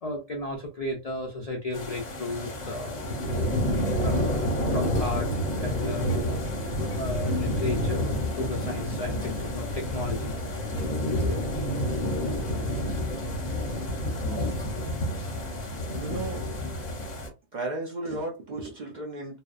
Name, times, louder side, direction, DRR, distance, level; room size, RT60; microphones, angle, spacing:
voice 1, 0.0-3.1 3.7-5.3 5.6-6.3 7.0-10.4 11.1-11.5, left 2 dB, 80° left, 0.3 m, -34 dB
sound 1, 1.7-17.3, equal, 40° left, 0.7 m, -29 dB
voice 2, 14.1-14.5 15.9-16.4 17.5-19.4, right 2 dB, 50° right, 0.5 m, -34 dB
2.7 x 2.0 x 2.3 m
omnidirectional pair, 1.4 m